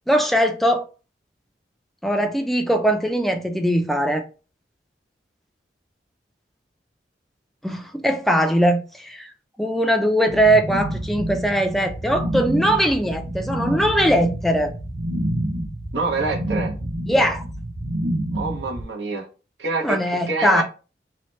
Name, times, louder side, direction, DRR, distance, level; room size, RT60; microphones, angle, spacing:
voice 1, 0.1-0.9 2.0-4.3 7.6-9.3 9.6-14.7 17.1-17.4 19.8-20.6, equal, ahead, 0.3 m, -20 dB
sound 1, 10.3-18.8, right 1 dB, 60° right, 0.6 m, -28 dB
voice 2, 15.9-16.7 18.3-19.2 19.6-20.0 20.3-20.6, right 3 dB, 90° right, 0.8 m, -26 dB
2.8 x 2.1 x 3.1 m
head